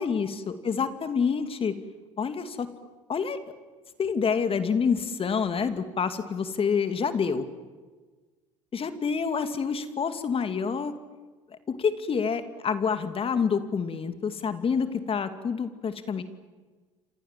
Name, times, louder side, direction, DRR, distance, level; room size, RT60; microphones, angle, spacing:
voice 1, 0.0-1.8 2.2-2.7 3.1-3.4 4.0-7.4 8.7-10.9 11.5-16.2, left 6 dB, 35° left, 10 dB, 2.5 m, -27 dB
30.0 x 26.0 x 7.6 m, 1.4 s
hypercardioid pair, 70°, 15 cm